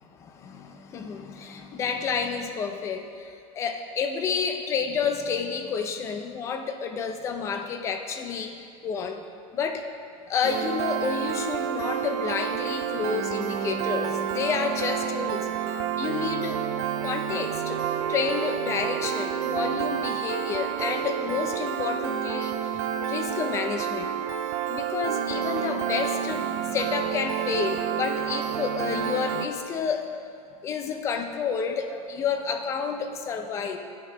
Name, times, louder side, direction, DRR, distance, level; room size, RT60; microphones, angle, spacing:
voice 1, 0.1-8.5 8.8-9.2 9.5-9.8 10.3-16.6 17.0-17.8 18.1-24.1 24.7-30.1 30.6-33.8, left 6 dB, 15° left, 5 dB, 0.4 m, -30 dB
Piano, 10.4-29.5, right 9 dB, 50° right, 0.5 m, -29 dB
9.9 x 6.6 x 4.7 m, 2.3 s
supercardioid pair, 175°, 18 cm